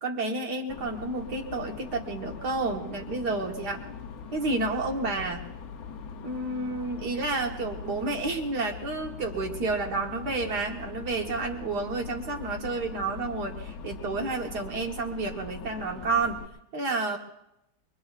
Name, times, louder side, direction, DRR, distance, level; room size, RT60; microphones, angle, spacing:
voice 1, 0.0-3.8 4.3-5.4 6.2-16.4 16.7-17.2, right 3 dB, 65° right, 1 dB, 1.8 m, -30 dB
sound 1, 0.7-16.5, left 5 dB, 60° left, 1.2 m, -41 dB
24.5 x 22.5 x 2.4 m, 0.84 s
omnidirectional pair, 1.9 m